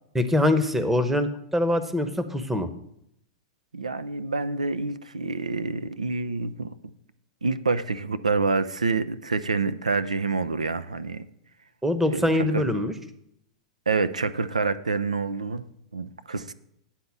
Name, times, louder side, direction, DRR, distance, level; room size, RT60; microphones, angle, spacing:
voice 1, 0.1-2.7 11.8-12.9, left 1 dB, 5° right, 8 dB, 0.8 m, -23 dB
voice 2, 3.7-6.8 7.4-11.3 12.1-12.6 13.9-15.7 15.9-16.5, right 4 dB, 90° right, 14 dB, 0.4 m, -27 dB
9.3 x 4.1 x 7.1 m, 0.76 s
hypercardioid pair, 100°, 4 cm